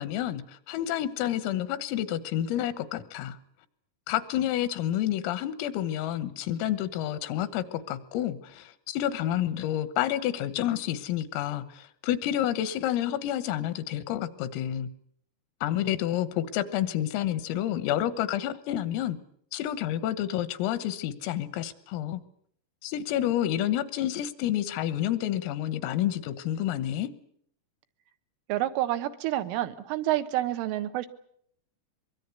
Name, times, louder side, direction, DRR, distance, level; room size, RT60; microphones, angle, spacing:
voice 1, 0.0-3.4 4.1-14.9 15.6-19.2 19.5-22.2 22.8-27.1, left 12 dB, 85° left, 14 dB, 3.9 m, -29 dB
voice 2, 28.5-31.1, right 14 dB, 80° right, 10 dB, 3.6 m, -28 dB
24.0 x 22.5 x 8.2 m, 0.66 s
omnidirectional pair, 5.8 m